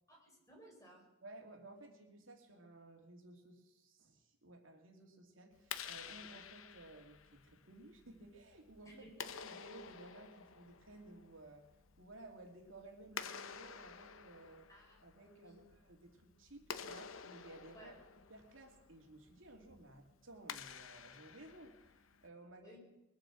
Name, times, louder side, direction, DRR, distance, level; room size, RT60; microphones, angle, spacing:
voice 1, 0.1-1.1 8.8-9.3 14.7-15.6 17.7-18.0 22.6-22.8, equal, 15° left, -1 dB, 4.7 m, -59 dB
voice 2, 1.2-9.1 9.4-11.7 12.0-14.7 15.0-17.9 18.3-22.8, right 2 dB, 75° right, 3 dB, 2.7 m, -56 dB
Clapping, 5.5-22.3, left 7 dB, 80° left, 0.9 m, -51 dB
21.5 x 8.9 x 7.4 m, 1.0 s
head